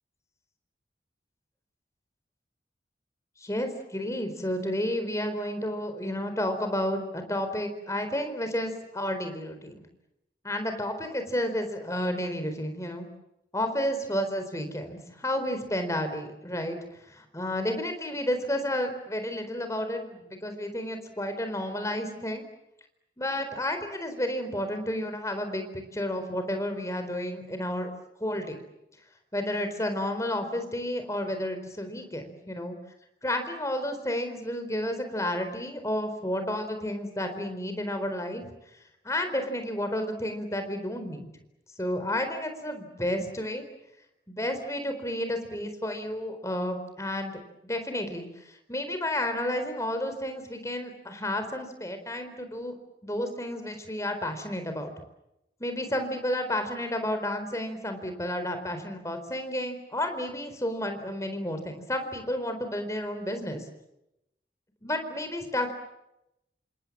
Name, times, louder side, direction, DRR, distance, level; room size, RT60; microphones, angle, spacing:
voice 1, 3.4-9.8 10.4-13.1 13.5-16.8 17.1-22.4 23.2-27.9 28.2-28.6 29.3-32.8 33.2-38.5 39.0-41.3 41.8-43.6 44.3-52.8 53.0-54.9 55.6-63.6 64.8-65.7, left 1 dB, 20° left, 7 dB, 4.2 m, -31 dB
28.0 x 27.0 x 7.6 m, 0.86 s
head